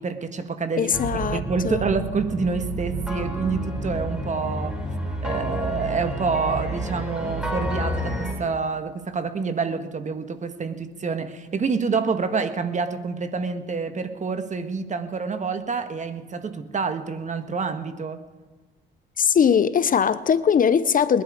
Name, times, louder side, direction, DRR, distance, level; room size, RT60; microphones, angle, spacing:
voice 1, 0.0-0.9 1.3-4.8 5.2-18.2, right 5 dB, 35° right, 1.4 m, -27 dB
voice 2, 0.8-1.8 19.2-21.2, left 7 dB, 45° left, 0.7 m, -20 dB
sound 1, 0.9-8.3, right 1 dB, 5° right, 4.1 m, -29 dB
20.5 x 11.5 x 4.9 m
cardioid pair, 90°, 20 cm